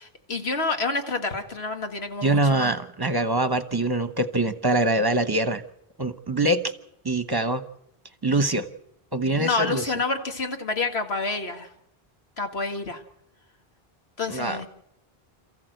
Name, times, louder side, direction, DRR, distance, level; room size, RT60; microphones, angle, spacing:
voice 1, 0.0-2.7 9.3-11.7 12.4-13.0 14.2-14.7, left 3 dB, 85° left, 5 dB, 2.1 m, -28 dB
voice 2, 2.2-5.6 6.0-6.7 7.0-7.6 8.2-8.7 9.1-9.8 14.3-14.6, right 2 dB, 25° right, 11 dB, 1.0 m, -24 dB
27.5 x 14.5 x 7.9 m, 0.80 s
omnidirectional pair, 1.0 m